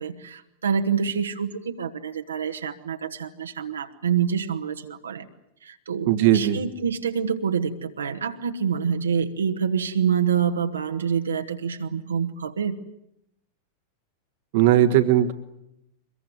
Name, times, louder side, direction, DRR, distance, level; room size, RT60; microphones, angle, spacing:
voice 1, 0.0-5.3 5.6-12.8, right 7 dB, 70° right, 5 dB, 1.6 m, -26 dB
voice 2, 6.0-6.6 14.5-15.3, right 12 dB, 50° right, 9 dB, 1.5 m, -18 dB
24.5 x 22.0 x 9.5 m, 0.80 s
figure-of-eight pair, 90°, 0 cm